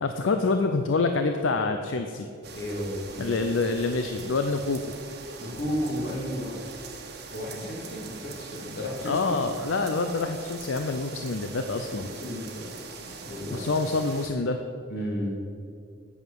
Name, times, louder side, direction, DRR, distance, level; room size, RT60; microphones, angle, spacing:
voice 1, 0.0-2.3 3.2-4.9 9.0-12.1 13.5-14.6, left 3 dB, 75° left, 6 dB, 0.6 m, -26 dB
sound 1, 2.4-14.3, right 4 dB, 55° right, 1.3 m, -42 dB
voice 2, 2.5-3.3 5.4-6.6 7.3-9.2 12.0-12.7 13.0-13.7 14.9-15.4, equal, 55° left, -3 dB, 2.7 m, -33 dB
8.5 x 7.2 x 7.7 m, 2.4 s
head